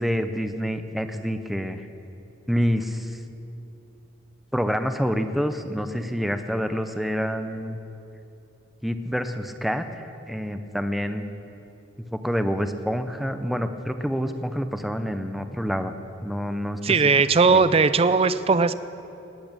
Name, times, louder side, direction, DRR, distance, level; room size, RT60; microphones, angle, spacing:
voice 1, 0.0-1.8 2.5-3.2 4.5-7.8 8.8-11.3 12.1-15.9 16.2-17.1 17.5-17.6, equal, ahead, 8 dB, 0.7 m, -27 dB
voice 2, 16.8-18.7, right 4 dB, 30° right, 14 dB, 0.5 m, -18 dB
19.0 x 8.5 x 8.9 m, 2.9 s
head